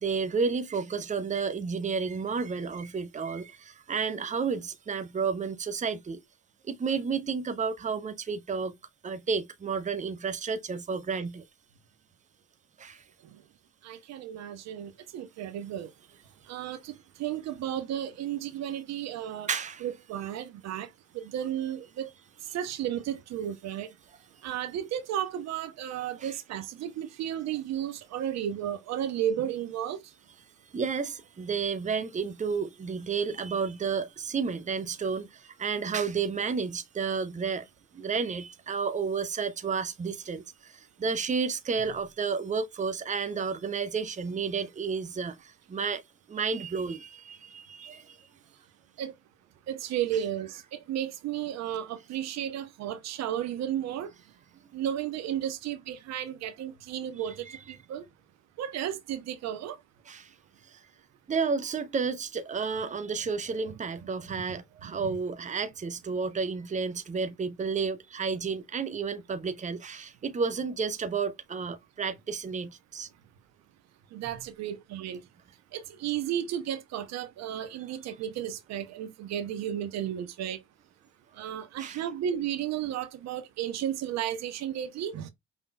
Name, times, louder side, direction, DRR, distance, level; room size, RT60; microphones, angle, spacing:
voice 1, 0.0-6.2 6.7-8.7 9.0-11.4 12.8-13.0 19.5-19.8 26.2-26.3 30.7-37.7 37.9-46.0 46.3-48.2 57.2-57.6 60.1-60.3 60.7-60.8 61.3-73.1 81.8-82.0, right 5 dB, 20° right, 0.8 m, -31 dB
voice 2, 13.8-15.9 16.5-19.5 19.8-20.9 21.1-22.1 22.5-23.9 24.4-30.0 49.0-49.1 49.7-54.1 54.7-58.1 58.6-59.8 64.5-64.6 64.8-65.0 74.1-75.2 75.7-80.6 81.4-85.3, right 10 dB, 55° right, 0.8 m, -33 dB
5.6 x 3.5 x 2.3 m
hypercardioid pair, 55°, 33 cm